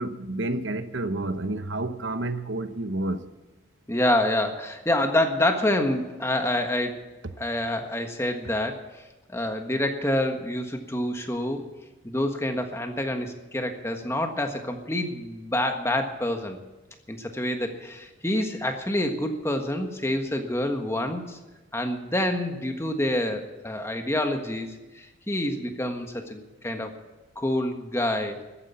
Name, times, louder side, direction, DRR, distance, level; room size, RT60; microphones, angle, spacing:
voice 1, 0.0-3.3, right 2 dB, 80° right, 1.0 m, -30 dB
voice 2, 3.9-7.0 7.4-9.0 9.3-11.7 12.0-16.6 17.1-21.4 21.7-27.0 27.3-28.4, left 1 dB, 15° left, 1.5 m, -27 dB
14.0 x 10.0 x 8.6 m
head